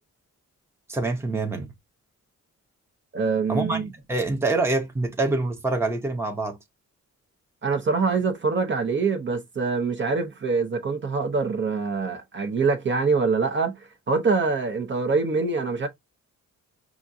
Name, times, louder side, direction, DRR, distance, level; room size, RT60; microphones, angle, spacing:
voice 1, 0.9-1.7 3.5-6.6, right 2 dB, 10° right, 0.8 m, -26 dB
voice 2, 3.1-3.9 7.6-15.9, right 4 dB, 40° right, 0.8 m, -24 dB
5.9 x 2.5 x 2.6 m
wide cardioid pair, 175°, 31 cm